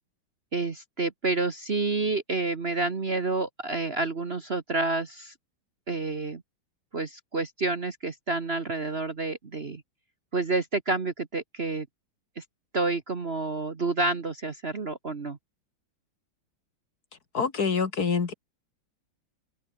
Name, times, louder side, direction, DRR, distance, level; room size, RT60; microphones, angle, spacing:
voice 1, 0.5-5.3 5.9-6.4 6.9-9.8 10.3-11.9 12.4-12.5 12.7-15.4, right 3 dB, 35° right, 1.4 m, -29 dB
voice 2, 17.3-18.3, left 5 dB, 50° left, 2.4 m, -26 dB
open air
omnidirectional pair, 2.2 m